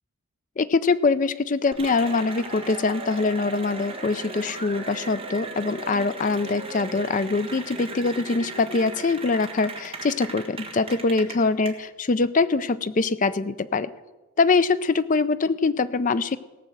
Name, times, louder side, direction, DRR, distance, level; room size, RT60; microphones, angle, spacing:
voice 1, 0.6-13.9 14.4-16.4, left 3 dB, 35° left, 14 dB, 0.4 m, -23 dB
Cheering / Applause, 1.7-11.7, right 2 dB, 25° right, 1.6 m, -37 dB
17.5 x 6.3 x 7.8 m, 1.2 s
head